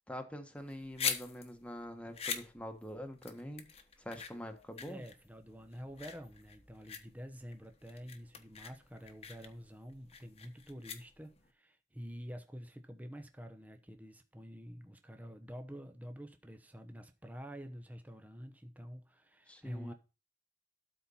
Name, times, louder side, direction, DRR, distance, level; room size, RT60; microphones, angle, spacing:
voice 1, 0.1-3.6 4.0-5.0 19.5-19.9, equal, 5° left, 1.4 m, -45 dB
sound 1, 0.6-11.5, left 7 dB, 35° left, 1.2 m, -43 dB
voice 2, 4.9-19.9, equal, 10° right, 0.9 m, -48 dB
12.5 x 4.4 x 5.6 m
head